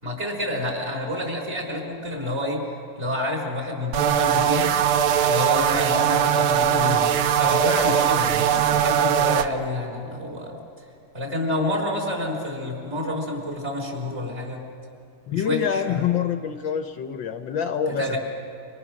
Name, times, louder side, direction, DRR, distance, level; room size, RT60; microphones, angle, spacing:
voice 1, 0.0-2.7 3.0-4.7 5.2-10.6 11.1-14.6 15.3-16.0 17.9-18.2, left 1 dB, 30° right, 1 dB, 4.5 m, -28 dB
sound 1, 3.9-9.5, right 9 dB, 80° right, 1.7 m, -20 dB
voice 2, 15.3-18.2, left 8 dB, 65° left, 7 dB, 1.4 m, -26 dB
28.5 x 25.5 x 6.3 m, 2.4 s
omnidirectional pair, 2.4 m